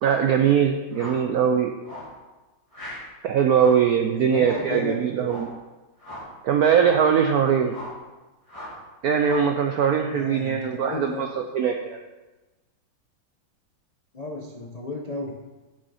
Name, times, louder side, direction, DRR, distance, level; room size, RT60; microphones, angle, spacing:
voice 1, 0.0-1.7 3.2-5.5 6.4-7.8 9.0-11.3 11.5-12.0, right 7 dB, 85° right, 4 dB, 0.8 m, -21 dB
sound 1, 0.9-1.3 1.8-2.2 2.7-3.1 3.5-3.9 4.4-4.7 5.2-5.6 6.0-6.3 6.8-7.1 7.7-8.0 8.5-8.8 9.2-9.6, equal, 15° left, 2.4 m, -39 dB
voice 2, 4.1-5.3 10.1-11.3 14.1-15.3, left 3 dB, 75° left, -1 dB, 0.3 m, -34 dB
8.2 x 6.4 x 4.9 m, 1.1 s
omnidirectional pair, 2.3 m